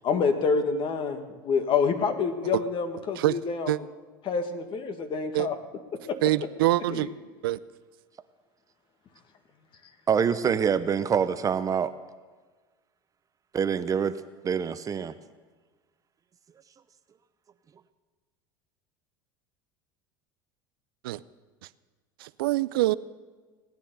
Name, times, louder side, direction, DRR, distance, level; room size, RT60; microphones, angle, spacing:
voice 1, 0.0-3.8 4.2-5.5 6.1-6.2 6.9-7.1, left 5 dB, 45° left, 7 dB, 1.8 m, -27 dB
voice 2, 6.2-7.1 7.4-7.6 21.0-21.2 22.2-23.0, right 17 dB, 80° right, 18 dB, 0.5 m, -25 dB
voice 3, 10.1-11.9 13.5-14.2 14.4-15.1, right 7 dB, 30° right, 12 dB, 0.7 m, -25 dB
18.0 x 10.0 x 6.8 m, 1.4 s
hypercardioid pair, 95°, 12 cm